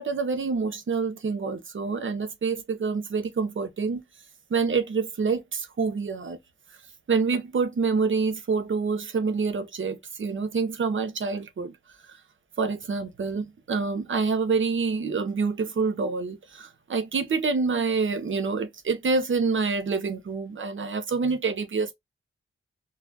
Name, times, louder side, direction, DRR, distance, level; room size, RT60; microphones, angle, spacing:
voice 1, 0.0-4.0 4.5-6.4 7.1-11.7 12.1-12.2 12.6-21.9, right 4 dB, 65° right, 0.8 m, -27 dB
4.0 x 2.4 x 2.8 m
wide cardioid pair, 110°, 21 cm